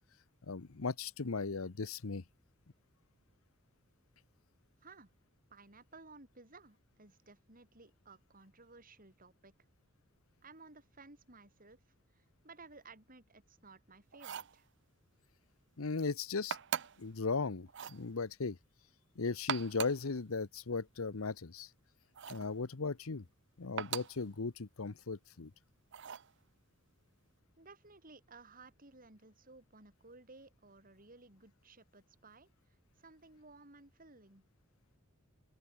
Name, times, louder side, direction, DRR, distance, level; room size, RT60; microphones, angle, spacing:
voice 1, 0.4-2.2 15.8-16.6 17.0-18.6 19.2-21.7 22.3-23.2 23.6-25.5, left 4 dB, 90° left, 0.9 m, -37 dB
voice 2, 5.5-9.5 10.4-11.8 12.1-14.7 27.6-34.5, right 3 dB, 40° right, 7.8 m, -57 dB
sound 1, 14.1-14.6 16.5-17.1 17.7-18.0 19.3-20.1 22.2-22.5 23.8-24.2 25.9-26.3, right 8 dB, 60° right, 0.8 m, -40 dB
open air
head